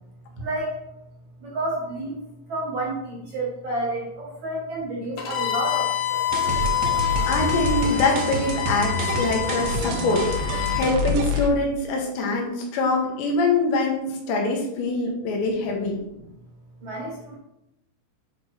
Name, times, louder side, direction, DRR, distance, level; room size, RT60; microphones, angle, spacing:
voice 1, 0.4-0.7 1.4-2.2 2.5-6.3 16.1-16.3 16.8-17.4, right 1 dB, 60° right, -4 dB, 2.0 m, -30 dB
Bowed string instrument, 5.2-10.9, left 13 dB, 70° left, 3.0 m, -27 dB
sound 1, 6.3-11.5, equal, 80° right, 2.2 m, -27 dB
voice 2, 7.3-16.0, left 3 dB, 85° left, 0 dB, 3.6 m, -24 dB
8.6 x 5.7 x 3.1 m, 0.87 s
omnidirectional pair, 5.0 m